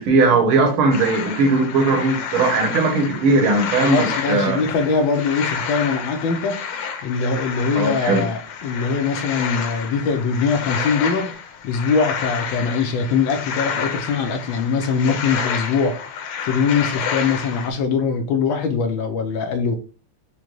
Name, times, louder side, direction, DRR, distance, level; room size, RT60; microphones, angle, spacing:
voice 1, 0.0-4.6 7.8-8.3, right 3 dB, 80° right, 1.7 m, -18 dB
sound 1, 0.9-17.7, left 7 dB, 90° left, 1.5 m, -29 dB
voice 2, 3.8-6.6 7.0-11.3 11.6-16.0 16.4-19.8, left 5 dB, 75° left, 1.3 m, -22 dB
5.0 x 2.2 x 3.0 m
omnidirectional pair, 2.3 m